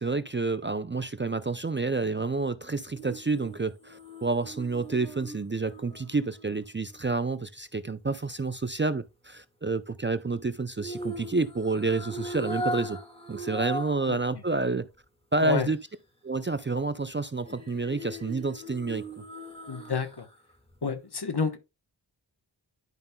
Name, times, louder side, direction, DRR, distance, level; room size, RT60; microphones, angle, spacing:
voice 1, 0.0-13.0 13.3-14.9 15.3-15.8 16.2-19.0, right 3 dB, 25° right, 0.4 m, -29 dB
sound 1, 3.0-7.2 10.8-14.1 14.5-14.6 17.4-20.3 20.7-20.8, right 1 dB, 10° left, 1.8 m, -39 dB
voice 2, 19.7-20.3 20.8-21.6, left 5 dB, 55° left, 1.1 m, -29 dB
11.0 x 5.3 x 2.2 m
wide cardioid pair, 50°, 46 cm